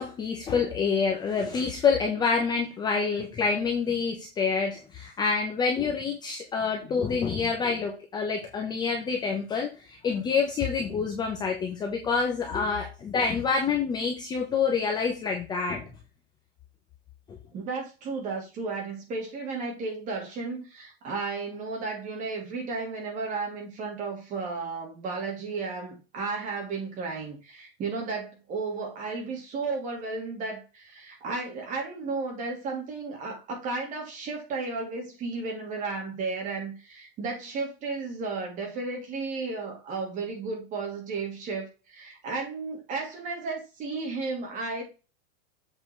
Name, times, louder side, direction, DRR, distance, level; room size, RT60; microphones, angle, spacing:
voice 1, 0.0-15.9 17.3-17.4, left 5 dB, 15° left, 1.0 m, -27 dB
voice 2, 17.5-44.8, right 4 dB, 25° right, 2.8 m, -33 dB
7.8 x 4.5 x 4.6 m
supercardioid pair, 175°, 31 cm